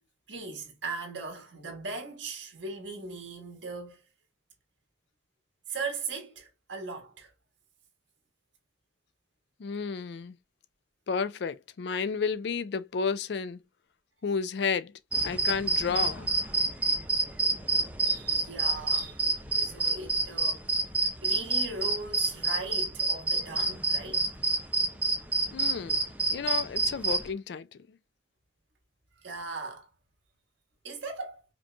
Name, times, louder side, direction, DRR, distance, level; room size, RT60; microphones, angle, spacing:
voice 1, 0.3-4.0 5.7-7.3 18.0-19.3 19.6-20.6 21.2-24.2 29.2-29.9 30.8-31.4, right 4 dB, 80° right, 1.5 m, -38 dB
voice 2, 9.6-10.3 11.1-13.6 14.2-14.9 15.2-16.3 25.5-26.0 26.3-27.8, left 5 dB, 65° left, 0.4 m, -31 dB
sound 1, 15.1-27.3, right 2 dB, 10° right, 0.6 m, -28 dB
5.0 x 3.0 x 2.2 m
head